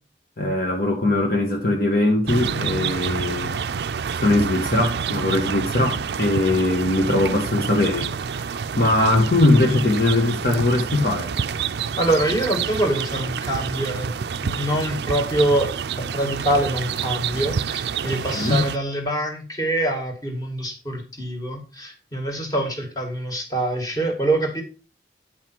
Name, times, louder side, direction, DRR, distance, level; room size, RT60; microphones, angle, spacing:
voice 1, 0.4-3.6 4.2-11.3 18.3-18.6, left 2 dB, 50° left, 1.4 m, -21 dB
sound 1, 2.3-18.8, right 6 dB, 70° right, 0.4 m, -28 dB
voice 2, 12.0-14.1 14.4-24.6, right 1 dB, 20° left, 2.2 m, -25 dB
9.4 x 5.8 x 4.5 m
head